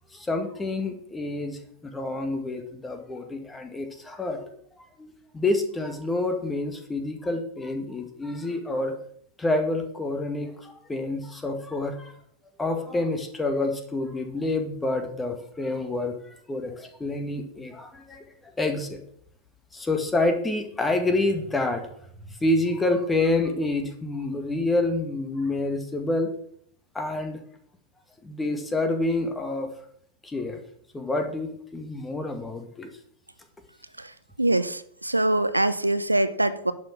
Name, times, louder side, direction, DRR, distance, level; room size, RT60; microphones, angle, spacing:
voice 1, 0.1-4.5 5.0-8.9 9.4-12.1 12.6-19.0 19.7-21.9 22.3-26.3 27.0-27.4 28.2-29.7 30.2-30.6 30.9-32.9, left 2 dB, 10° left, 6 dB, 1.8 m, -28 dB
voice 2, 34.4-36.7, right 1 dB, 85° right, 13 dB, 0.6 m, -23 dB
11.0 x 5.9 x 6.1 m, 0.66 s
figure-of-eight pair, 90°, 0 cm